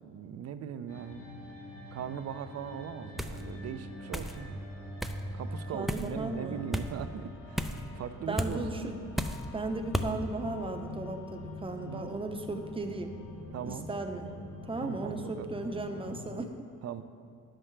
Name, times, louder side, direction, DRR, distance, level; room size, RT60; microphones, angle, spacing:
voice 1, 0.0-1.2 1.9-4.6 5.3-8.6 11.8-12.1 13.5-13.9 14.8-15.5 16.8-17.0, right 8 dB, 55° right, 11 dB, 0.5 m, -40 dB
sound 1, 0.9-16.5, left 1 dB, 45° left, 1.6 m, -45 dB
sound 2, 3.2-3.4 4.1-4.4 5.0-5.2 5.9-6.1 6.7-6.9 7.6-7.8 8.4-8.5 9.2-9.4 9.9-10.1, equal, ahead, 0.4 m, -32 dB
voice 2, 5.7-6.7 8.3-9.0 9.5-13.2 13.7-14.4 14.7-16.7, right 2 dB, 20° right, 5 dB, 0.8 m, -36 dB
10.5 x 7.6 x 3.3 m, 2.5 s
cardioid pair, 90°, 30 cm